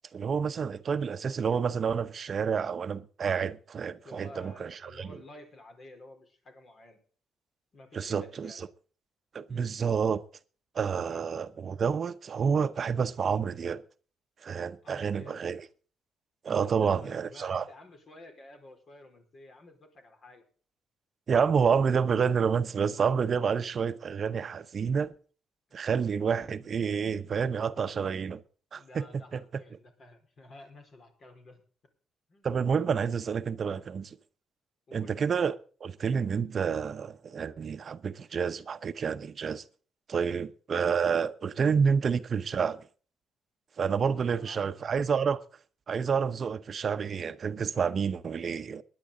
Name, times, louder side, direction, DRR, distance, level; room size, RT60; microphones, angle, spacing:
voice 1, 0.1-5.1 7.9-8.7 9.3-10.2 10.7-13.8 14.4-15.6 16.4-17.6 21.3-25.1 25.7-28.4 28.7-29.1 29.3-29.4 32.4-34.2 34.9-39.6 40.1-42.8 43.8-45.4 45.9-48.8, right 6 dB, 50° right, 0.8 m, -29 dB
voice 2, 4.0-7.0 7.7-8.6 9.5-9.7 11.0-11.2 14.8-15.6 16.5-20.4 25.7-25.9 28.7-31.6 32.3-32.5 34.9-35.2 40.2-40.4 44.1-44.8, left 2 dB, 50° left, 4.6 m, -52 dB
19.5 x 10.5 x 3.9 m
cardioid pair, 90°, 0 cm